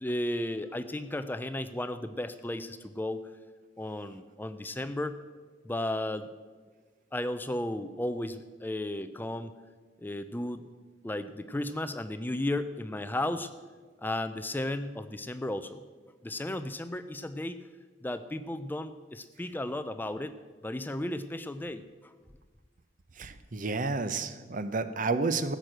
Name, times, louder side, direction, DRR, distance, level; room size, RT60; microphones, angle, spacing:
voice 1, 0.0-3.3 3.8-5.2 5.6-6.3 7.1-9.5 10.0-10.6 11.0-13.5 14.0-15.8 16.2-17.6 18.0-20.4 20.6-22.1, left 1 dB, 10° left, 11 dB, 0.4 m, -34 dB
voice 2, 23.2-25.6, right 3 dB, 45° right, 11 dB, 0.7 m, -30 dB
15.0 x 6.5 x 7.7 m, 1.4 s
head